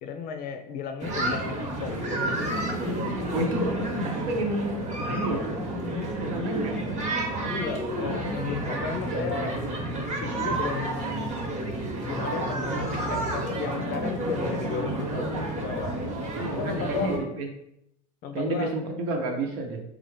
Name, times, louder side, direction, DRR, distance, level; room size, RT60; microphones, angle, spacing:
voice 1, 0.0-2.2 7.4-9.6 10.2-11.3 12.0-15.3 15.6-15.9 16.5-17.3 18.2-18.7, left 6 dB, 45° left, 7 dB, 0.5 m, -34 dB
sound 1, 1.0-17.2, right 1 dB, 35° right, 1.0 m, -30 dB
voice 2, 3.3-3.8 4.0-6.8 15.0-15.4 16.3-17.5 18.3-19.8, right 2 dB, 70° right, 3 dB, 0.9 m, -31 dB
4.1 x 2.4 x 3.1 m, 0.78 s
hypercardioid pair, 90°, 20 cm